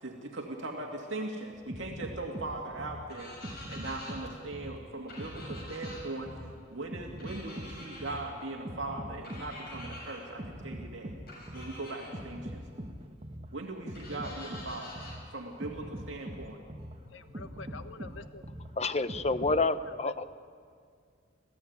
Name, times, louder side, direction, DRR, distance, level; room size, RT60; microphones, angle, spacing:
voice 1, 0.0-11.2 11.5-12.7 13.5-15.0 15.3-16.6, right 2 dB, 70° right, 1 dB, 2.3 m, -40 dB
sound 1, 1.5-19.6, equal, 30° right, 1.4 m, -43 dB
sound 2, 3.1-4.1 5.1-6.0 7.2-8.2 9.2-10.2 11.3-12.1 13.9-15.1, left 1 dB, 50° left, 7.7 m, -46 dB
voice 2, 17.0-18.5 19.8-20.2, left 3 dB, 75° left, 9 dB, 1.3 m, -47 dB
voice 3, 18.8-20.2, left 3 dB, 35° left, 12 dB, 0.7 m, -28 dB
27.0 x 16.5 x 9.5 m, 2.2 s
head